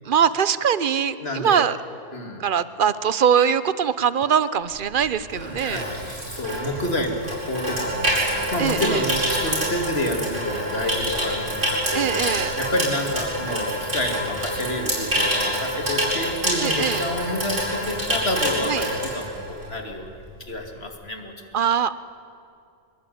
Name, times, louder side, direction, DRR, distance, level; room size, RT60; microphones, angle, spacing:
voice 1, 0.0-1.8 2.4-5.8 8.6-9.0 11.9-12.5 16.6-17.0 18.7-18.9 21.5-21.9, right 8 dB, 50° right, 15 dB, 0.9 m, -22 dB
voice 2, 1.2-1.7 2.1-2.4 5.4-11.6 11.9-12.1 12.6-20.1 20.5-21.3, left 1 dB, 60° left, 3 dB, 2.9 m, -29 dB
Water tap faucet / Sink (filling or washing), 4.8-19.8 20.1-20.4, equal, 90° right, 8.4 m, -26 dB
25.0 x 21.5 x 9.4 m, 2.5 s
omnidirectional pair, 1.2 m